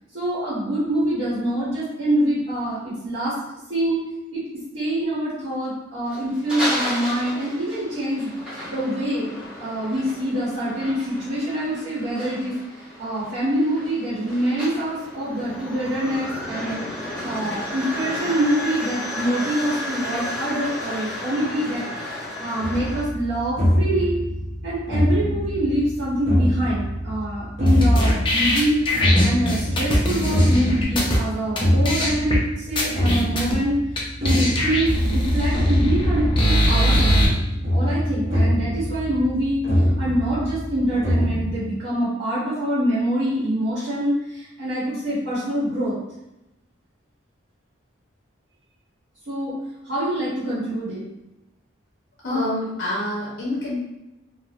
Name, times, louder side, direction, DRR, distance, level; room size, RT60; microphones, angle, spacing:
voice 1, 0.1-3.4 3.7-4.1 4.3-8.3 8.7-12.5 13.0-16.8 17.2-21.8 22.4-24.2 24.6-37.2 37.7-39.7 40.0-45.9 49.3-49.5 49.8-51.0, right 1 dB, 70° right, -9 dB, 0.9 m, -25 dB
sound 1, 6.1-23.0, left 1 dB, 5° right, 1.0 m, -33 dB
voice 2, 17.2-17.6 52.2-53.8, left 1 dB, 55° left, -6 dB, 0.7 m, -27 dB
sound 2, 22.6-41.5, equal, 35° right, 0.7 m, -24 dB
sound 3, 27.7-31.2 31.6-31.7 31.8-32.4 32.8-33.6 34.0-34.1 34.2-37.3, equal, 25° left, 0.4 m, -21 dB
3.1 x 2.0 x 2.4 m, 0.92 s
head